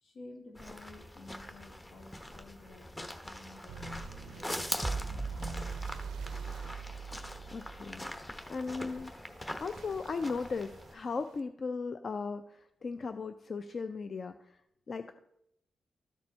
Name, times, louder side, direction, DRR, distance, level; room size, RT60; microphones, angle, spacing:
voice 1, 0.0-5.7, left 2 dB, 80° left, 1 dB, 1.8 m, -51 dB
sound 1, 0.5-10.9, left 1 dB, 20° left, 1.0 m, -43 dB
sound 2, 3.7-11.4, right 8 dB, 90° right, 0.4 m, -54 dB
sound 3, 4.8-8.3, right 4 dB, 25° right, 0.5 m, -39 dB
voice 2, 7.5-8.0 8.5-9.1 9.6-14.6 14.9-15.2, left 4 dB, 55° left, 9 dB, 0.4 m, -37 dB
13.0 x 4.3 x 4.3 m, 0.80 s
cardioid pair, 65°, 0 cm